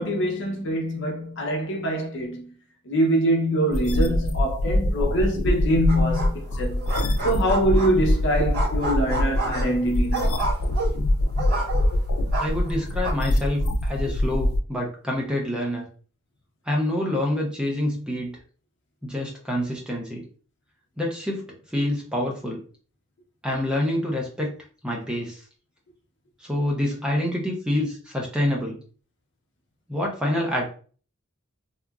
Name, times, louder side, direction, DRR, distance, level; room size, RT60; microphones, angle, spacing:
voice 1, 0.0-2.5 2.8-6.8 7.2-10.4, right 1 dB, 55° left, 0.7 m, -24 dB
sound 1, 3.7-14.6, left 1 dB, 80° left, 0.4 m, -24 dB
sound 2, 5.9-6.5 6.8-8.1 8.5-12.0 12.3-13.1, right 2 dB, 45° right, 1.2 m, -30 dB
voice 2, 12.4-15.8 16.7-18.3 19.0-20.2 21.0-21.5 21.7-22.6 23.4-24.5 24.8-25.4 26.4-28.8 29.9-30.6, left 1 dB, 5° right, 0.5 m, -27 dB
2.8 x 2.3 x 2.3 m
head